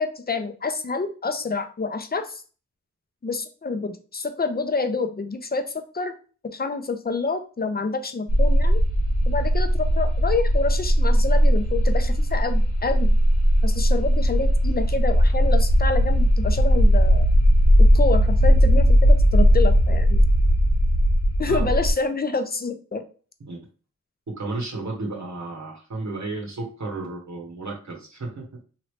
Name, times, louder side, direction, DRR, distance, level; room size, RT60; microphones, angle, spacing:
voice 1, 0.0-2.4 3.2-5.6 5.9-6.1 6.5-8.8 9.3-13.2 13.6-17.3 17.8-19.0 19.3-20.2 21.4-23.0, left 4 dB, 30° left, 8 dB, 0.4 m, -27 dB
sound 1, 8.3-21.9, equal, 85° left, 1.0 m, -18 dB
voice 2, 24.3-28.6, right 2 dB, 70° right, -1 dB, 0.9 m, -33 dB
3.0 x 2.5 x 3.1 m, 0.38 s
wide cardioid pair, 50°, 30 cm